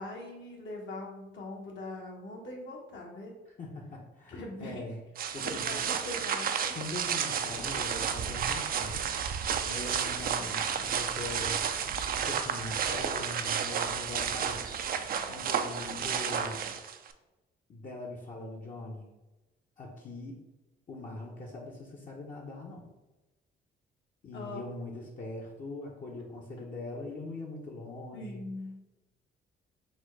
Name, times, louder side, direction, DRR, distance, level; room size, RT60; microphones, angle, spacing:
voice 1, 0.0-3.3 4.3-4.9 5.4-6.8 9.6-10.2 24.3-24.6 28.1-28.8, left 1 dB, 70° left, -1 dB, 1.2 m, -42 dB
voice 2, 3.6-5.0 5.3-5.8 6.7-9.1 9.7-11.6 12.2-14.6 15.3-16.6 17.7-19.1 19.8-20.4 20.9-22.9 24.2-28.4, left 2 dB, 40° left, -2 dB, 0.7 m, -42 dB
sound 1, 5.2-17.1, right 7 dB, 50° right, 0.4 m, -32 dB
4.3 x 2.2 x 4.5 m, 1.1 s
cardioid pair, 90°, 20 cm